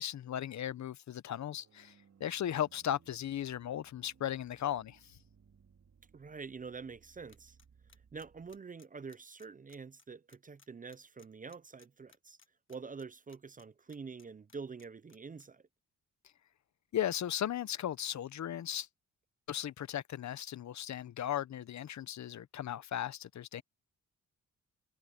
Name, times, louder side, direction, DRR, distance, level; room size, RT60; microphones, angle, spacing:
voice 1, 0.0-5.2 16.9-18.9 19.5-23.6, left 11 dB, 60° left, 0.8 m, -36 dB
sound 1, 1.6-8.6, right 6 dB, 55° right, 3.1 m, -65 dB
voice 2, 6.1-7.6 8.1-12.4 12.7-15.7, right 5 dB, 25° right, 0.5 m, -46 dB
sound 2, 7.3-14.2 14.5-15.5, left 5 dB, 40° left, 1.4 m, -63 dB
cardioid pair, 80°, 32 cm